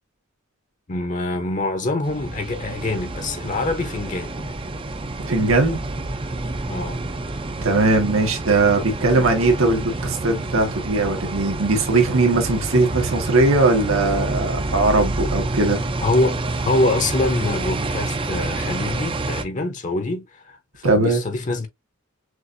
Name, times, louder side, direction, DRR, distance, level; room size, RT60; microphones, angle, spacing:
voice 1, 0.9-4.5 6.7-7.0 16.0-21.7, left 2 dB, 35° left, 0.8 m, -25 dB
sound 1, 2.0-19.4, right 2 dB, 25° right, 0.5 m, -28 dB
voice 2, 5.2-5.8 7.6-15.9 20.8-21.2, right 2 dB, 80° right, 1.5 m, -19 dB
6.5 x 2.6 x 2.6 m
head